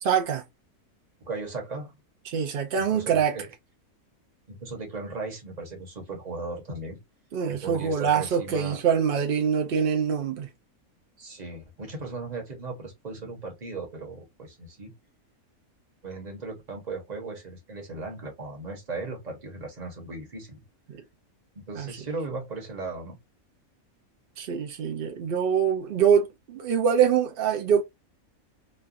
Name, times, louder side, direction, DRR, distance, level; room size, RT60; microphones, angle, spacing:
voice 1, 0.0-0.4 2.3-3.3 7.3-10.5 21.8-21.9 24.4-27.8, right 7 dB, 80° right, 0.5 m, -24 dB
voice 2, 1.2-2.0 2.8-3.4 4.5-7.0 7.5-8.8 11.2-14.9 16.0-20.6 21.5-23.2, right 3 dB, 30° right, 1.1 m, -37 dB
3.2 x 2.3 x 2.4 m
omnidirectional pair, 1.5 m